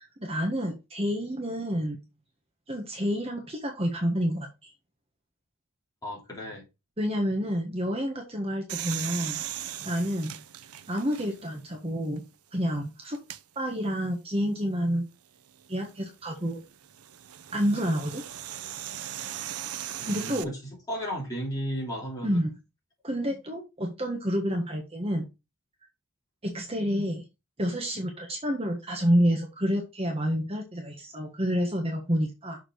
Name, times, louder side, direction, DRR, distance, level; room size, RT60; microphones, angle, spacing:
voice 1, 0.0-2.0 2.7-4.7 7.0-9.4 9.8-10.4 10.9-12.2 12.5-13.2 13.5-15.0 15.7-16.6 17.5-18.2 20.0-20.5 22.2-22.5 23.0-25.3 26.4-27.2 27.6-32.6, equal, 25° right, 1.4 m, -29 dB
voice 2, 6.0-6.6 20.0-20.6 20.9-22.5, equal, 15° left, 3.4 m, -34 dB
sound 1, 8.7-11.6 12.2-12.3 13.1-13.4 15.6-20.4, right 11 dB, 90° right, 0.6 m, -38 dB
6.6 x 5.0 x 4.7 m
head